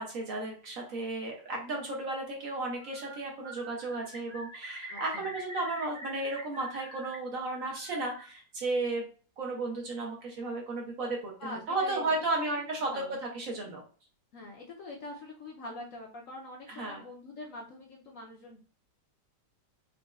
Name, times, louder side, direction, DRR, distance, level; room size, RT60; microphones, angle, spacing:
voice 1, 0.0-9.1 9.4-13.8 16.7-17.0, right 2 dB, 65° right, 0 dB, 0.9 m, -34 dB
Bird, 2.6-3.2 3.4-7.2 7.5-8.3, equal, 30° right, 0.8 m, -45 dB
voice 2, 4.9-5.3 11.4-12.0 12.3-13.2 14.3-18.6, left 2 dB, 65° left, -1 dB, 0.8 m, -44 dB
4.0 x 2.2 x 2.2 m, 0.39 s
omnidirectional pair, 1.8 m